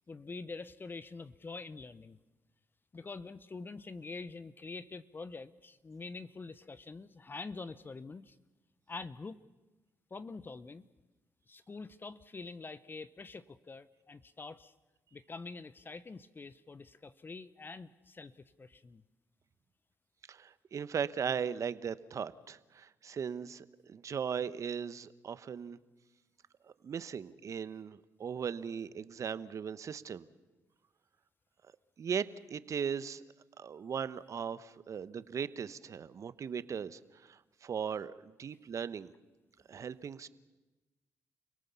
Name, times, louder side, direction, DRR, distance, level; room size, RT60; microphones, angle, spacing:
voice 1, 0.1-2.2 2.9-8.4 8.9-9.4 10.1-10.9 11.5-14.7 15.1-19.0, left 3 dB, 30° left, 15 dB, 0.8 m, -45 dB
voice 2, 20.3-25.8 26.7-30.3 32.0-33.2 33.6-39.1 39.7-40.3, right 7 dB, 55° right, 15 dB, 1.0 m, -38 dB
30.0 x 17.5 x 7.0 m, 1.1 s
supercardioid pair, 65°, 7 cm